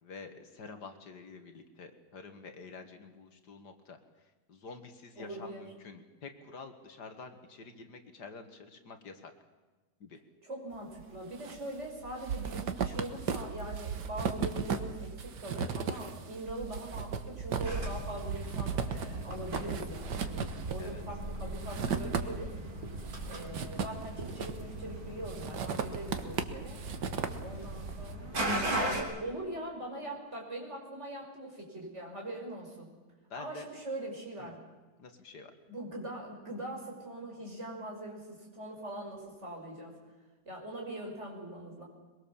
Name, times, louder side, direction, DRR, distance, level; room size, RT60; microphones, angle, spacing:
voice 1, 0.0-4.0 4.5-9.3 10.0-10.2 20.8-21.0 33.3-33.7 34.4-34.5 35.0-35.5, left 4 dB, 75° left, 7 dB, 2.4 m, -48 dB
voice 2, 5.2-5.6 10.4-22.5 23.3-26.8 27.4-32.9 33.4-34.6 35.7-40.0 40.5-41.8, right 1 dB, 40° right, -1 dB, 5.9 m, -42 dB
sound 1, 11.0-11.6 11.9-22.6 23.0-24.8 25.3-27.9, right 6 dB, 85° right, 1.9 m, -36 dB
sound 2, 17.6-29.0, right 1 dB, 60° right, 3.9 m, -38 dB
23.0 x 22.0 x 7.2 m, 1.3 s
omnidirectional pair, 1.8 m